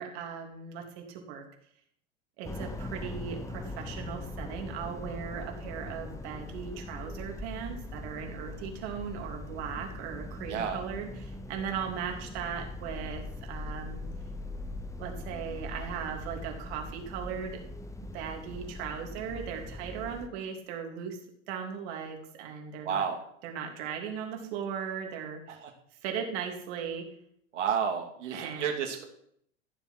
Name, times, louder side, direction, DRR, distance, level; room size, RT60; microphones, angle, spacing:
voice 1, 0.0-1.4 2.4-14.1 15.0-17.6 18.1-21.2 21.5-23.1 23.4-25.5 26.0-27.1 28.3-28.7, right 7 dB, 60° right, 3 dB, 3.4 m, -38 dB
sound 1, 2.4-20.3, left 2 dB, 10° left, 1.0 m, -41 dB
voice 2, 10.5-10.8 22.8-23.2 25.5-25.7 27.5-29.0, right 7 dB, 75° right, 3 dB, 2.7 m, -31 dB
14.5 x 7.3 x 6.0 m, 0.68 s
hypercardioid pair, 95°, 36 cm